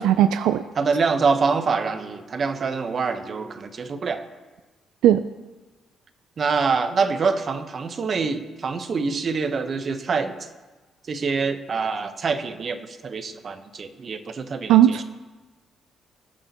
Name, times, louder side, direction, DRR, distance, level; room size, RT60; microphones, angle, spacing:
voice 1, 0.0-0.6 5.0-5.2 14.7-15.0, right 11 dB, 90° right, 11 dB, 0.3 m, -17 dB
voice 2, 0.8-4.2 6.4-10.5 11.1-15.0, right 4 dB, 45° right, 8 dB, 1.1 m, -25 dB
20.5 x 8.9 x 3.0 m, 1.2 s
cardioid pair, 90°, 0 cm